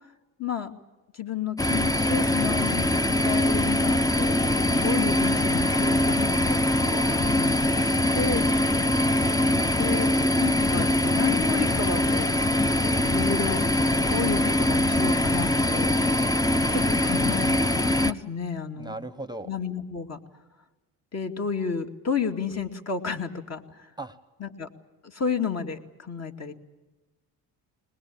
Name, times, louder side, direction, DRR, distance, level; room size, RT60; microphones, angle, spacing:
voice 1, 0.4-0.7 1.1-2.9 3.2-4.4 4.7-8.5 9.8-10.1 10.4-12.3 13.0-13.6 14.1-16.0 16.7-17.6 18.0-19.0 19.5-20.2 21.1-23.6 24.4-24.7 25.0-26.5, left 6 dB, 40° left, 4 dB, 2.5 m, -31 dB
sound 1, 1.6-18.1, left 1 dB, 10° left, 0.8 m, -23 dB
voice 2, 8.6-9.4 18.8-19.5 24.0-24.2, right 2 dB, 10° right, 12 dB, 1.1 m, -38 dB
21.5 x 20.5 x 8.7 m, 1.2 s
supercardioid pair, 80°, 40 cm